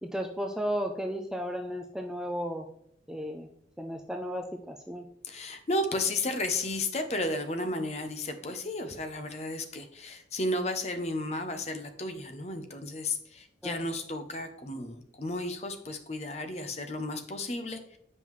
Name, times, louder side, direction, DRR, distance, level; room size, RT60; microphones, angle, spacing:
voice 1, 0.0-2.6 3.1-3.5 3.8-5.0 13.6-13.8, equal, 5° right, 3 dB, 0.3 m, -34 dB
voice 2, 5.2-18.0, left 2 dB, 35° left, 7 dB, 0.7 m, -33 dB
7.5 x 5.4 x 3.1 m, 0.71 s
head